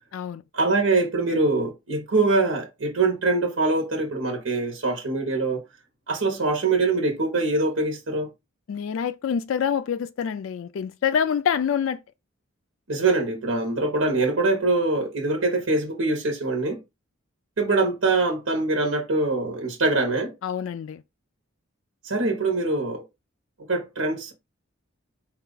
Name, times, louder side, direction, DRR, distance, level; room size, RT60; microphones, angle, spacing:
voice 1, 0.5-5.6 6.1-8.3 12.9-16.8 17.6-20.3 22.0-23.0 23.7-24.3, right 3 dB, 85° right, 1.0 m, -23 dB
voice 2, 8.7-12.0 20.4-21.0, left 7 dB, 75° left, 0.3 m, -26 dB
4.3 x 2.4 x 3.8 m
head